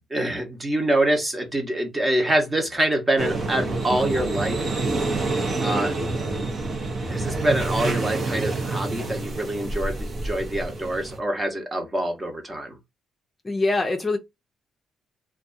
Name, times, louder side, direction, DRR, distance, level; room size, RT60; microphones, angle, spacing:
voice 1, 0.1-4.7 5.6-5.9 7.1-12.7, right 1 dB, 20° right, 1.0 m, -25 dB
sound 1, 3.2-11.2, right 3 dB, 45° right, 0.8 m, -27 dB
voice 2, 13.4-14.2, left 2 dB, 25° left, 0.5 m, -23 dB
2.6 x 2.3 x 2.5 m
cardioid pair, 90°, 0 cm